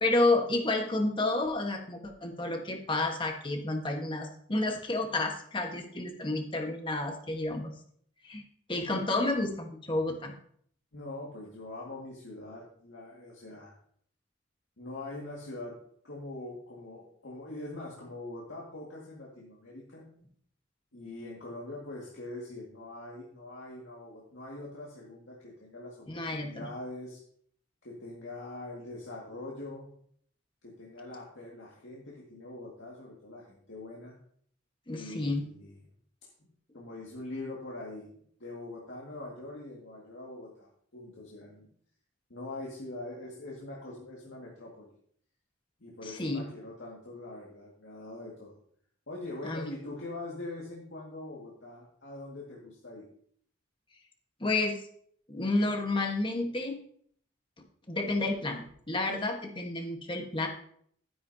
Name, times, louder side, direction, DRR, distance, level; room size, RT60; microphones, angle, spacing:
voice 1, 0.0-7.7 8.2-8.4 8.7-10.3 26.1-26.7 34.9-35.4 46.0-46.4 49.4-49.7 54.4-54.8 55.3-56.8 57.9-60.5, left 2 dB, 25° left, 3 dB, 1.4 m, -30 dB
voice 2, 10.9-13.7 14.8-20.1 20.9-27.2 27.8-29.9 30.6-34.2 34.9-35.8 36.2-36.5 36.7-38.1 38.4-41.7 42.3-44.9 45.8-48.6 49.1-53.1, left 2 dB, 80° left, -4 dB, 2.1 m, -43 dB
12.0 x 10.0 x 2.8 m, 0.63 s
head